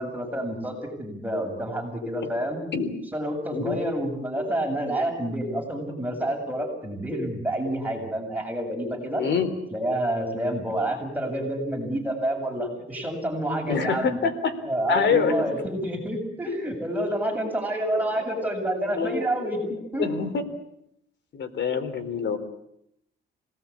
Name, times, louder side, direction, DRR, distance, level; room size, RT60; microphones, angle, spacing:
voice 1, 0.0-2.6 3.1-9.2 9.7-14.2 14.7-20.1, right 1 dB, 10° right, 2 dB, 7.5 m, -28 dB
voice 2, 9.2-9.5 13.7-14.5 14.9-15.3 18.1-18.5 18.9-19.7 20.0-20.4 21.3-22.4, left 6 dB, 65° left, 9 dB, 3.8 m, -26 dB
27.0 x 19.0 x 8.6 m, 0.78 s
cardioid pair, 90°, 20 cm